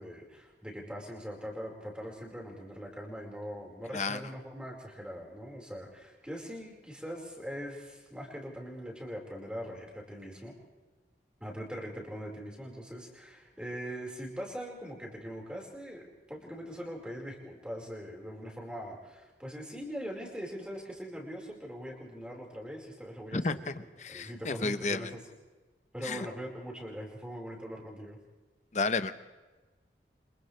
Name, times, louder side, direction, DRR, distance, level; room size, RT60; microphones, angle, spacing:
voice 1, 0.0-10.6 11.4-23.7 24.1-25.2 25.9-28.2, equal, 5° right, -1 dB, 4.8 m, -41 dB
voice 2, 24.0-25.1 26.0-26.3 28.7-29.1, left 3 dB, 40° left, 11 dB, 0.9 m, -31 dB
29.5 x 26.5 x 3.4 m, 1.2 s
head